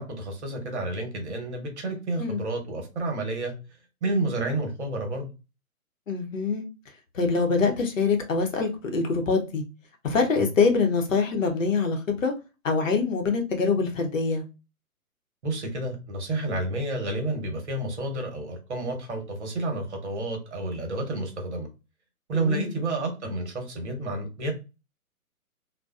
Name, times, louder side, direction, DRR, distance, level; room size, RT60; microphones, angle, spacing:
voice 1, 0.0-3.5 4.0-5.3 10.4-10.5 15.4-21.7 22.3-24.5, right 2 dB, 50° right, 3 dB, 1.0 m, -30 dB
voice 2, 6.1-6.6 7.1-9.6 10.0-12.3 12.6-14.4 22.3-22.8, left 4 dB, 60° left, 4 dB, 0.8 m, -24 dB
2.8 x 2.2 x 2.3 m, 0.28 s
figure-of-eight pair, 130°, 44 cm